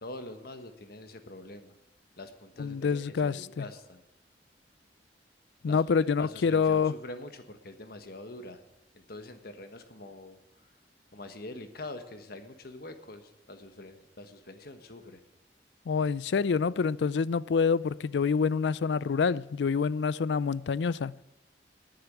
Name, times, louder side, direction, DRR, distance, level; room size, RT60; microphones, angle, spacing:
voice 1, 0.0-1.7 2.2-4.0 5.7-8.6 8.9-10.4 11.1-15.2, left 2 dB, 60° left, 1.4 m, -45 dB
voice 2, 2.6-3.6 5.6-6.9 15.9-21.1, left 5 dB, 75° left, 0.4 m, -27 dB
10.5 x 9.3 x 9.5 m
head